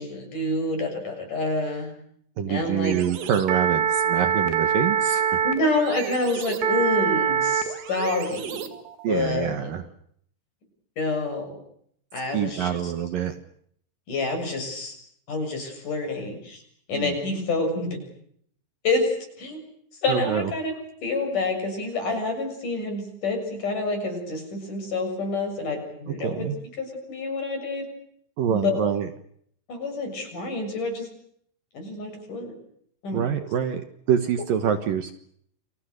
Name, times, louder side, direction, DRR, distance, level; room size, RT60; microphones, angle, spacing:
voice 1, 0.0-1.9 2.5-3.3 5.4-8.7 9.1-9.7 11.0-11.6 12.1-12.9 14.1-15.0 15.3-16.6 16.9-18.0 18.8-19.6 20.0-20.7 21.0-26.5 26.8-27.9 28.5-28.8 29.7-31.1 31.7-32.6 33.0-33.3, left 2 dB, 45° left, 5 dB, 8.5 m, -28 dB
voice 2, 2.4-5.4 9.0-9.8 12.3-13.3 16.9-17.2 20.1-20.5 26.2-26.6 28.4-29.1 33.1-35.1, right 8 dB, 60° right, 9 dB, 2.7 m, -26 dB
sound 1, 2.8-9.1, right 8 dB, 80° right, 4.2 m, -25 dB
29.5 x 26.0 x 6.7 m, 0.67 s
omnidirectional pair, 4.9 m